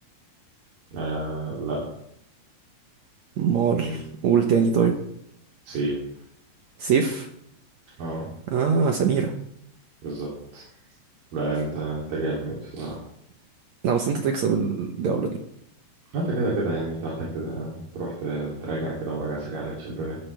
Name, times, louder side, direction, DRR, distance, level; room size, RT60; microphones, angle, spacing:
voice 1, 0.9-1.8 3.7-4.0 5.6-6.0 8.0-8.3 10.0-10.6 11.3-13.0 16.1-20.2, right 2 dB, 60° right, -5 dB, 4.8 m, -30 dB
voice 2, 3.4-4.9 6.8-7.3 8.5-9.3 13.8-15.3, right 6 dB, 75° right, 3 dB, 1.6 m, -22 dB
16.5 x 12.0 x 3.5 m, 0.73 s
omnidirectional pair, 4.7 m